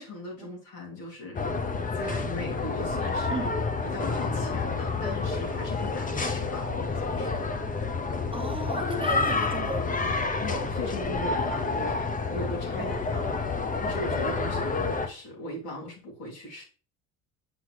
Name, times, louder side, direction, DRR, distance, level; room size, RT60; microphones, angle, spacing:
voice 1, 0.0-3.5 3.8-7.4 10.4-16.6, left 1 dB, 75° left, 3.3 m, -39 dB
sound 1, 1.3-15.1, left 4 dB, 20° left, 0.9 m, -29 dB
voice 2, 8.3-10.1 12.7-12.9, right 3 dB, 15° right, 0.9 m, -36 dB
7.8 x 5.9 x 3.3 m
supercardioid pair, 75°, 40 cm